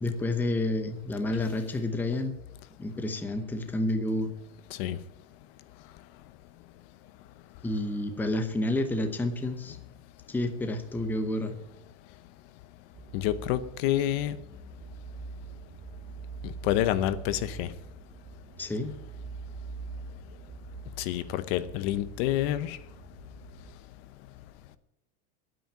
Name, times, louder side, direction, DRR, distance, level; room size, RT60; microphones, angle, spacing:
voice 1, 0.0-2.4 2.8-4.3 7.6-9.8 10.3-11.6 18.6-18.9, left 1 dB, 5° left, 6 dB, 0.8 m, -29 dB
sound 1, 12.9-23.7, right 4 dB, 25° right, 0.9 m, -44 dB
voice 2, 13.1-14.4 16.4-17.7 21.0-22.8, left 13 dB, 45° left, 13 dB, 0.8 m, -28 dB
10.0 x 9.2 x 8.8 m, 0.83 s
supercardioid pair, 165°, 41 cm